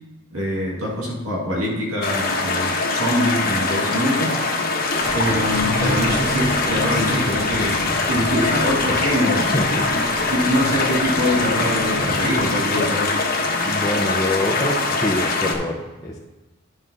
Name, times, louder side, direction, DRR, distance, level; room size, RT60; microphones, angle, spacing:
voice 1, 0.3-4.4 5.1-9.4 10.3-13.1, equal, 80° right, -3 dB, 2.0 m, -24 dB
sound 1, 2.0-15.5, left 3 dB, 40° left, 1.1 m, -22 dB
sound 2, 5.0-12.4, equal, 45° right, 2.3 m, -31 dB
voice 2, 9.4-10.2 13.5-16.2, left 1 dB, 15° left, -3 dB, 0.7 m, -26 dB
10.5 x 5.5 x 4.0 m, 1.1 s
head